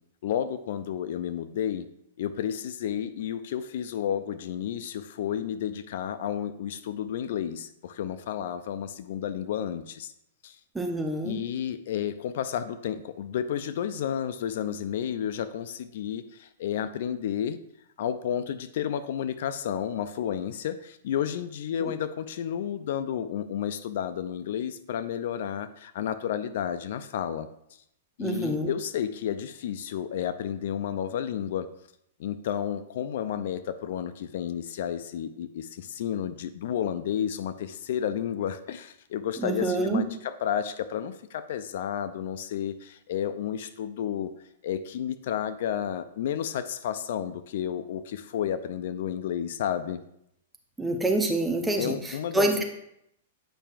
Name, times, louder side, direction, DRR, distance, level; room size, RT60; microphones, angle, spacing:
voice 1, 0.2-1.9 2.2-10.1 10.4-10.6 11.2-17.6 18.0-27.5 28.2-31.7 32.2-44.3 44.6-50.0 51.8-52.6, left 9 dB, 65° left, 12 dB, 0.4 m, -31 dB
voice 2, 10.7-11.4 21.8-21.9 28.2-28.7 39.4-40.0 50.8-52.6, right 2 dB, 10° right, 3 dB, 0.8 m, -27 dB
8.9 x 5.5 x 2.5 m, 0.76 s
hypercardioid pair, 140°, 0 cm